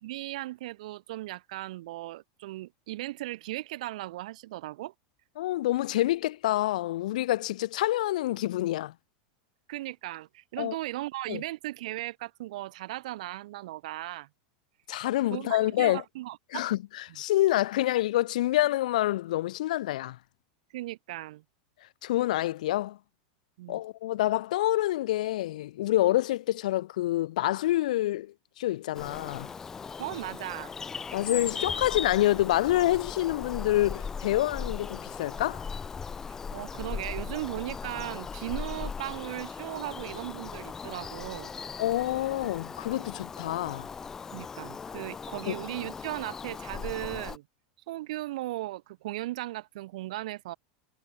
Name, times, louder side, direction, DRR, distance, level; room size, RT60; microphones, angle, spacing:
voice 1, 0.0-4.9 9.7-14.3 15.3-16.7 20.7-21.4 23.6-23.8 30.0-30.7 36.5-41.5 44.3-47.5 47.9-50.6, right 17 dB, 65° right, 0.8 m, -37 dB
voice 2, 5.4-8.9 10.6-10.8 11.3-11.4 14.9-16.0 16.5-16.8 17.1-20.2 22.0-23.0 23.7-29.5 31.1-35.6 41.8-43.9 45.5-45.6, left 15 dB, 75° left, 0.6 m, -27 dB
Bird vocalization bird call bird song, 28.9-47.4, left 5 dB, 10° left, 0.3 m, -38 dB
supercardioid pair, 165°, 4 cm